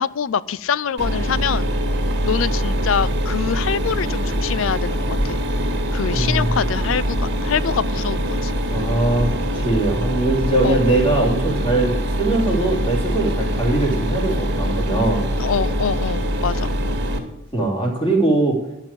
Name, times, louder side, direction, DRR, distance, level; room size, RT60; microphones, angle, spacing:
voice 1, 0.0-1.7 2.2-5.4 5.9-8.6 10.6-10.8 15.4-16.7, left 7 dB, 70° left, 19 dB, 0.4 m, -24 dB
Mechanisms, 1.0-17.2, equal, 55° right, 2.1 m, -23 dB
voice 2, 6.1-6.5 8.7-15.3 17.5-18.6, right 2 dB, 25° left, -1 dB, 3.4 m, -21 dB
11.5 x 6.1 x 8.7 m, 0.86 s
head